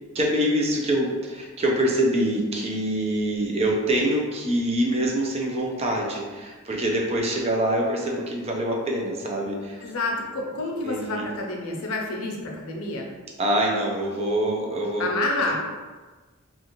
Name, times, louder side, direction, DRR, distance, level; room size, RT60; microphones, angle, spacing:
voice 1, 0.1-9.8 10.8-11.3 13.4-15.0 15.4-15.6, right 1 dB, 30° right, -1 dB, 0.4 m, -25 dB
voice 2, 9.8-13.1 15.0-15.6, left 2 dB, 90° left, 0 dB, 0.5 m, -28 dB
2.4 x 2.4 x 2.9 m, 1.3 s
head